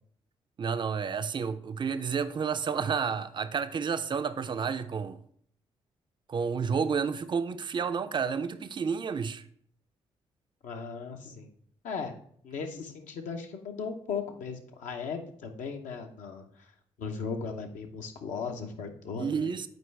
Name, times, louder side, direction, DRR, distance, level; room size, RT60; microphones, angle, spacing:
voice 1, 0.6-5.2 6.3-9.4 19.2-19.7, right 6 dB, 35° right, 0.5 m, -30 dB
voice 2, 10.6-11.5 11.8-12.2 12.4-16.7 17.0-19.7, left 5 dB, 70° left, 0.8 m, -37 dB
7.9 x 4.6 x 3.3 m
hypercardioid pair, 45°, 13 cm